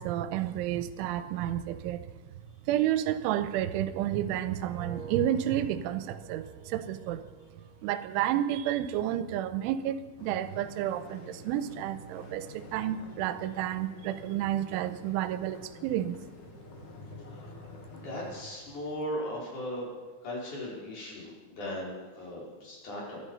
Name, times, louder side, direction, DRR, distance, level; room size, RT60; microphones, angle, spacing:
voice 1, 0.0-2.1 2.7-7.2 7.8-16.1, right 12 dB, 85° right, 12 dB, 3.1 m, -31 dB
sound 1, 3.8-8.8 9.2-9.5, right 4 dB, 70° right, 0.4 m, -52 dB
sound 2, 10.2-18.4, left 2 dB, 75° left, 1.1 m, -48 dB
voice 2, 17.9-19.9 20.2-23.2, equal, 40° left, -4 dB, 5.7 m, -37 dB
23.0 x 11.5 x 5.5 m, 1.3 s
omnidirectional pair, 5.5 m